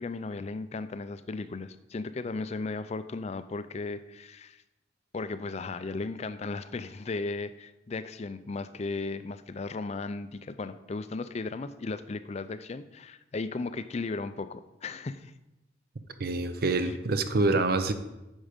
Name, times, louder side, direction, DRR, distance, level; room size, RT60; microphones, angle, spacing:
voice 1, 0.0-4.6 5.1-15.3 16.8-17.0, left 3 dB, 35° left, 12 dB, 0.4 m, -36 dB
voice 2, 16.2-17.9, right 3 dB, 50° right, 10 dB, 0.6 m, -26 dB
9.0 x 6.3 x 5.1 m, 1.0 s
head